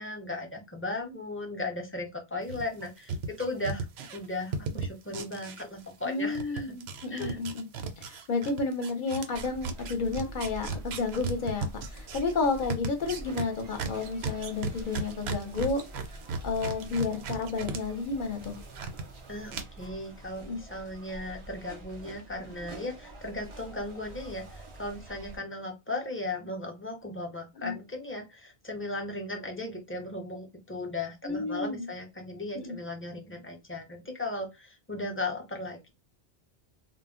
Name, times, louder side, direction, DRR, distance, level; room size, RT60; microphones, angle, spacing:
voice 1, 0.0-3.8 4.1-6.7 7.1-7.4 19.3-35.9, left 2 dB, 20° left, 2 dB, 0.4 m, -36 dB
sound 1, 2.5-6.1 6.3-17.8 18.1-19.0 19.5-19.6, right 4 dB, 80° right, 0.8 m, -36 dB
voice 2, 6.0-7.7 8.0-15.8 16.4-18.6 20.5-20.6 27.6-27.7 31.2-31.9 32.5-32.8, left 4 dB, 55° left, 5 dB, 0.7 m, -31 dB
sound 2, 9.3-25.4, right 1 dB, 40° right, 0.4 m, -46 dB
2.1 x 2.0 x 3.6 m, 0.23 s
omnidirectional pair, 1.1 m